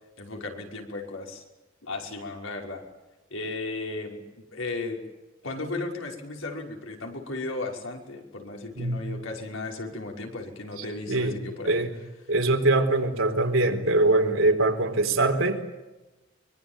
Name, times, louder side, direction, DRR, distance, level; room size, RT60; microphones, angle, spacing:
voice 1, 0.2-1.4 1.8-2.8 3.3-5.0 5.4-11.8, left 2 dB, 90° left, 1 dB, 6.0 m, -35 dB
voice 2, 8.8-9.1 11.1-12.0 12.3-15.6, right 2 dB, 85° right, 4 dB, 4.1 m, -23 dB
24.5 x 24.0 x 9.3 m, 1.1 s
head